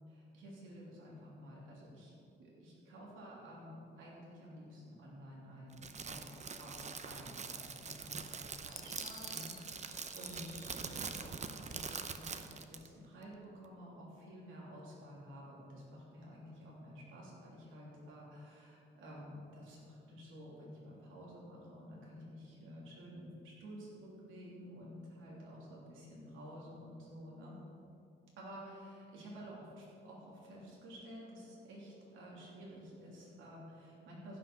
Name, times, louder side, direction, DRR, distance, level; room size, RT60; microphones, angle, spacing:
voice 1, 0.1-6.3 6.6-27.6 28.4-34.4, equal, 80° right, -5 dB, 3.2 m, -51 dB
Crackle, 5.7-12.9, right 5 dB, 35° right, 0.8 m, -44 dB
Fireworks, 8.7-11.1 11.5-12.3, left 6 dB, 45° left, 1.4 m, -58 dB
15.0 x 6.1 x 6.2 m, 2.7 s
cardioid pair, 90°, 20 cm